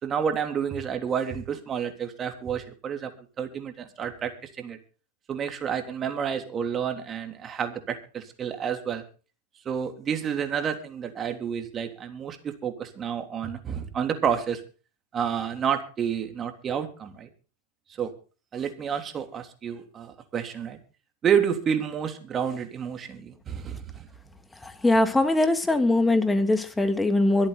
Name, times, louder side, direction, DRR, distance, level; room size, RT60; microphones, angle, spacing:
voice 1, 0.0-3.1 3.4-4.3 4.6-4.8 5.3-9.0 9.6-14.6 15.1-17.3 18.0-18.1 18.5-20.8 21.2-24.1, right 7 dB, 30° right, 6 dB, 3.4 m, -29 dB
voice 2, 24.6-27.5, left 2 dB, 10° left, 9 dB, 2.4 m, -22 dB
24.0 x 8.6 x 4.2 m, 0.36 s
hypercardioid pair, 100°, 0 cm